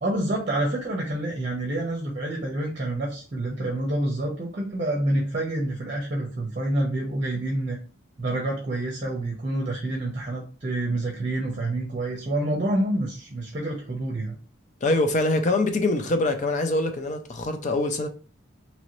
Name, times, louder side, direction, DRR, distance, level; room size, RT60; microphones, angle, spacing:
voice 1, 0.0-7.8 8.2-14.4, right 1 dB, 35° right, 0.7 m, -28 dB
voice 2, 14.8-18.1, left 2 dB, 35° left, 0.4 m, -24 dB
2.9 x 2.7 x 3.0 m
head